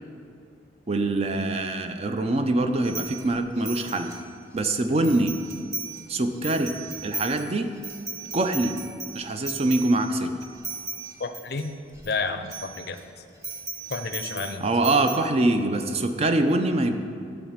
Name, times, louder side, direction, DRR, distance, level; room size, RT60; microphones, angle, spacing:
voice 1, 0.9-4.1 4.5-5.3 6.1-6.7 7.0-7.7 8.3-8.8 9.1-10.3 14.6-17.0, right 2 dB, 35° right, 7 dB, 0.5 m, -24 dB
sound 1, 2.8-4.6 5.0-6.1 6.3-12.1 12.5-13.0 13.4-15.2, right 3 dB, 15° right, 0.9 m, -37 dB
voice 2, 11.2-11.7 12.0-13.0 13.9-14.7, left 4 dB, 60° left, 9 dB, 0.5 m, -30 dB
10.5 x 4.0 x 7.2 m, 2.3 s
head